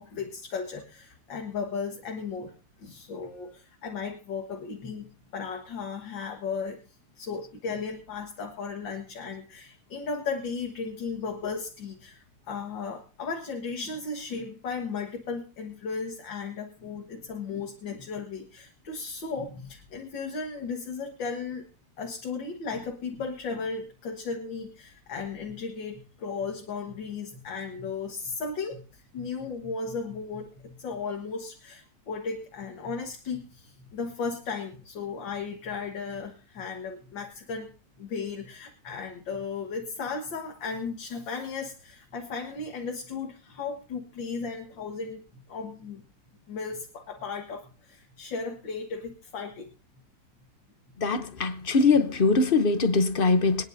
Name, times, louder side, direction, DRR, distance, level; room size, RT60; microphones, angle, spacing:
voice 1, 0.0-5.1 5.3-6.8 7.2-21.7 22.0-37.7 38.0-45.2 45.5-46.0 46.5-49.7, left 5 dB, 80° left, 2.3 m, -35 dB
voice 2, 51.0-53.6, left 3 dB, 40° left, 0.8 m, -22 dB
25.0 x 10.0 x 2.7 m
omnidirectional pair, 2.0 m